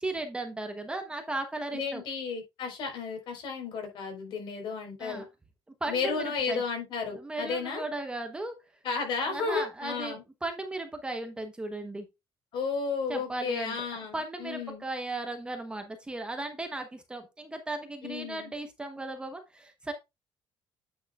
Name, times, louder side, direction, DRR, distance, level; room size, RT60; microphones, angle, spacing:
voice 1, 0.0-2.0 5.0-5.3 5.8-6.6 7.2-8.6 9.3-12.1 13.1-13.8 14.1-19.9, right 2 dB, 10° right, 1.0 m, -36 dB
voice 2, 1.7-5.3 5.9-7.8 8.8-10.2 12.5-14.8 18.0-18.5, left 5 dB, 60° left, 4.4 m, -33 dB
9.2 x 6.5 x 2.4 m
cardioid pair, 155°, 9 cm